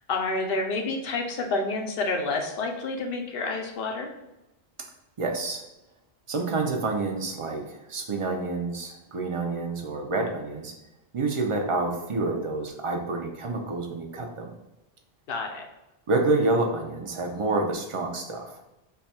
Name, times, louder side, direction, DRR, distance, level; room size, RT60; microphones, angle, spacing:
voice 1, 0.1-4.1 15.3-15.7, left 3 dB, 65° left, 2 dB, 0.8 m, -29 dB
voice 2, 5.2-5.6 6.3-10.7 11.1-14.5 16.1-18.6, right 3 dB, 45° right, 2 dB, 0.4 m, -28 dB
3.2 x 2.3 x 4.2 m, 0.96 s
omnidirectional pair, 1.1 m